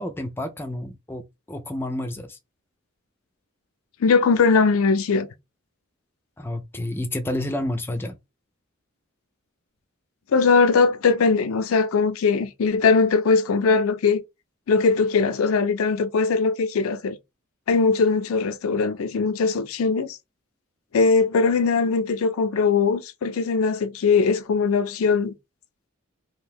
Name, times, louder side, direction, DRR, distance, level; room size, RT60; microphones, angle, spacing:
voice 1, 0.0-2.4 6.4-8.2, left 1 dB, 10° left, 0.4 m, -30 dB
voice 2, 4.0-5.3 10.3-14.2 14.7-17.2 17.7-20.2 20.9-25.3, left 4 dB, 85° left, 0.4 m, -20 dB
2.6 x 2.1 x 3.4 m
head